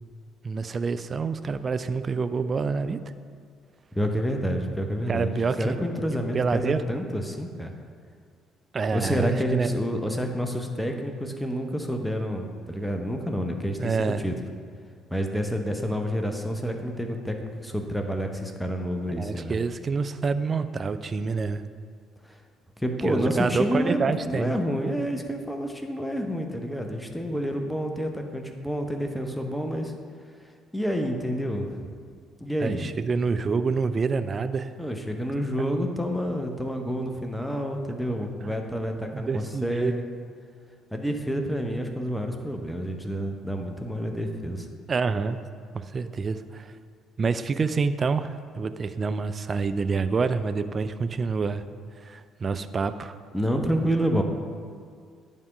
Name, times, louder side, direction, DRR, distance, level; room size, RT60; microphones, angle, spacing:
voice 1, 0.4-3.0 5.1-5.8 6.3-6.8 8.7-9.7 13.8-14.2 19.2-21.6 23.0-24.6 32.6-34.7 38.4-38.6 39.1-39.9 44.9-45.4 45.7-46.7 47.2-51.6 52.0-53.2, right 4 dB, 35° right, 11 dB, 0.3 m, -27 dB
voice 2, 3.9-7.7 8.9-14.3 15.1-19.5 22.2-22.4 22.8-29.9 30.7-31.9 32.4-32.8 34.8-40.0 40.9-44.7 53.3-54.2, equal, 5° left, 4 dB, 0.8 m, -29 dB
9.4 x 3.5 x 5.1 m, 2.2 s
figure-of-eight pair, 50°, 0 cm